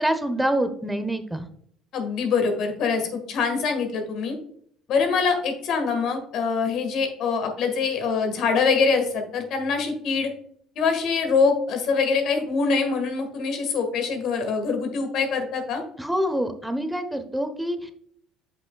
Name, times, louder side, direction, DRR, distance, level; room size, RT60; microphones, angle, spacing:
voice 1, 0.0-1.5 16.0-17.9, right 1 dB, 5° right, 8 dB, 1.0 m, -26 dB
voice 2, 1.9-4.4 4.9-10.3 10.7-15.8, left 5 dB, 60° left, 5 dB, 1.6 m, -24 dB
7.7 x 5.5 x 2.3 m, 0.63 s
hypercardioid pair, 65°, 0 cm